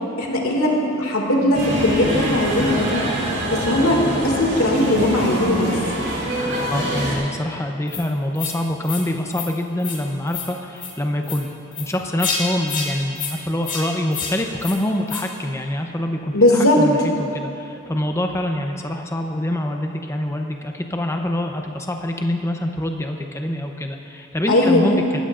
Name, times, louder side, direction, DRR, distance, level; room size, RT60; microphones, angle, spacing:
voice 1, 0.2-3.0 3.5-5.7 16.3-16.8 24.5-25.0, left 1 dB, 85° left, -1 dB, 2.3 m, -18 dB
sound 1, 1.5-7.1, equal, 55° right, 3.4 m, -25 dB
voice 2, 6.7-11.5 11.8-25.2, left 1 dB, 15° left, 3 dB, 0.7 m, -25 dB
sound 2, 7.9-8.0 8.4-8.5 8.8-9.0 9.3-9.5 9.8-10.0 10.3-10.5 10.8-10.9 11.2-11.4 11.7-11.9 12.2-12.4 12.7-12.9 13.2-13.3 13.6-13.8 14.1-14.3 14.6-14.8 15.1-15.2, left 6 dB, 40° left, 1.9 m, -28 dB
20.0 x 14.5 x 2.5 m, 2.8 s
head